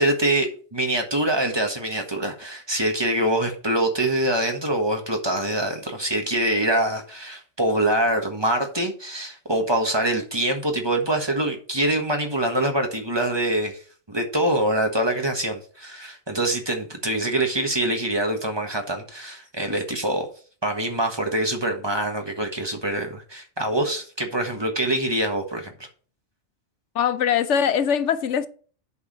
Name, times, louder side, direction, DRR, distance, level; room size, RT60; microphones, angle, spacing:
voice 1, 0.0-13.8 14.1-20.2 20.6-25.7, right 1 dB, 20° right, 1.4 m, -24 dB
voice 2, 26.9-28.5, left 8 dB, 75° left, 1.0 m, -22 dB
8.4 x 4.8 x 6.0 m
omnidirectional pair, 1.2 m